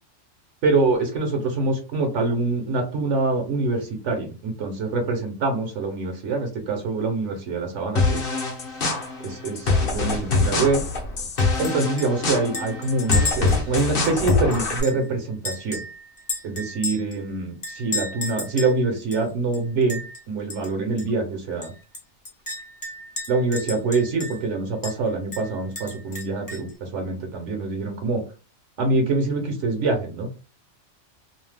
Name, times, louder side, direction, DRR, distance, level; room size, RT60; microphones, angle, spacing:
voice 1, 0.6-8.3 9.2-10.8 11.6-15.8 16.4-20.0 20.3-21.7 23.3-28.2 28.8-30.3, right 3 dB, 75° right, 3 dB, 1.0 m, -25 dB
sound 1, 8.0-14.8, left 3 dB, 55° left, 0.9 m, -24 dB
Chink clink, 11.4-11.7 12.0-12.1 12.5-15.0 15.4-17.2 17.6-18.8 19.1-19.2 19.5-20.2 20.5-20.7 21.0-21.1 21.6-24.5 24.8-25.0 25.3-26.7, left 2 dB, 25° left, 0.5 m, -32 dB
2.7 x 2.0 x 3.2 m, 0.33 s
omnidirectional pair, 1.2 m